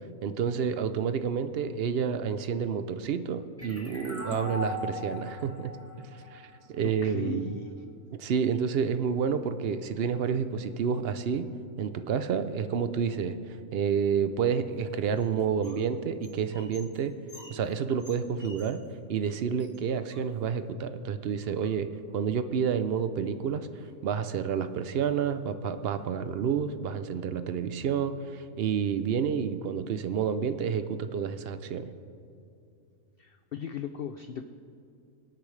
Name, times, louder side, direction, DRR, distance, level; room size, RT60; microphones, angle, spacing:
voice 1, 0.2-5.8 6.3-7.6 8.1-11.5 11.8-13.4 13.7-17.1 17.5-18.8 19.1-21.9 22.1-23.7 24.0-31.9, right 7 dB, 60° right, 10 dB, 0.7 m, -29 dB
sound 1, 3.6-7.0, left 1 dB, 10° left, 1.2 m, -38 dB
voice 2, 6.8-7.7 33.2-34.4, left 7 dB, 70° left, 8 dB, 0.5 m, -37 dB
sound 2, 14.7-15.9 16.1-18.9 19.2-19.3 19.6-20.7 21.4-22.1 23.2-23.3 23.6-24.1 24.6-24.8 25.2-25.3 25.8-26.6, left 1 dB, 25° left, 2.0 m, -54 dB
24.0 x 8.5 x 3.3 m, 2.5 s
omnidirectional pair, 1.5 m